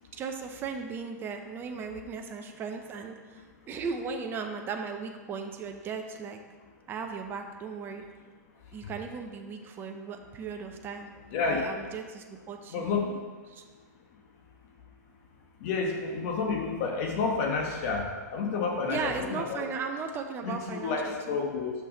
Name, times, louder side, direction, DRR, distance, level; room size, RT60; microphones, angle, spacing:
voice 1, 0.1-6.4 6.9-8.0 8.7-11.1 11.4-12.9 13.5-13.6 18.9-21.4, right 5 dB, 20° right, 4 dB, 0.7 m, -37 dB
voice 2, 11.3-11.6 12.7-13.1 15.6-19.6 20.4-21.7, left 4 dB, 45° left, 1 dB, 1.2 m, -30 dB
6.2 x 5.9 x 5.2 m, 1.4 s
hypercardioid pair, 135°, 10 cm